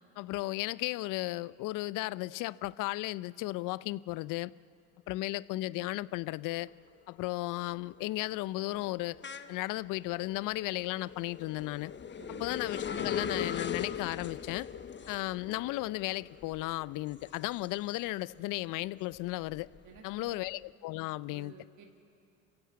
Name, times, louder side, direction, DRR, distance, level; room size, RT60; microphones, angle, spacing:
voice 1, 0.2-4.5 5.1-6.7 7.1-9.2 9.5-11.9 12.3-14.7 15.1-19.7 20.0-21.5, left 19 dB, 65° left, 20 dB, 0.6 m, -35 dB
sound 1, 6.3-6.7 7.1-18.4 18.8-20.5, left 7 dB, 35° left, 1.0 m, -41 dB
voice 2, 12.2-12.6 19.8-20.5 21.3-21.9, right 6 dB, 60° right, 2 dB, 2.1 m, -53 dB
27.0 x 16.0 x 8.5 m, 2.5 s
supercardioid pair, 70°, 34 cm